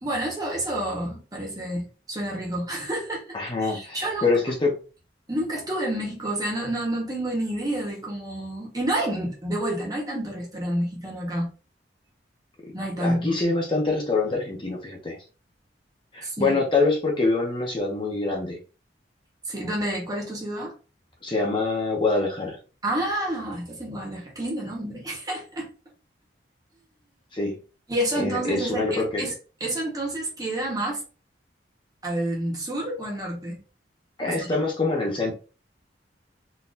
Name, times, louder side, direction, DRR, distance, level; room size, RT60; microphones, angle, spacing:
voice 1, 0.0-3.4 3.6-4.3 5.3-11.5 12.7-13.4 16.2-16.5 19.5-20.7 22.8-25.7 27.9-29.3 29.6-31.0 32.0-33.6 34.3-34.5, right 1 dB, 20° right, 1.2 m, -29 dB
voice 2, 3.3-4.8 13.0-15.2 16.1-18.6 21.2-22.6 27.3-27.6 28.1-29.3 34.2-35.3, left 3 dB, 30° left, 0.8 m, -25 dB
3.9 x 2.8 x 2.6 m
head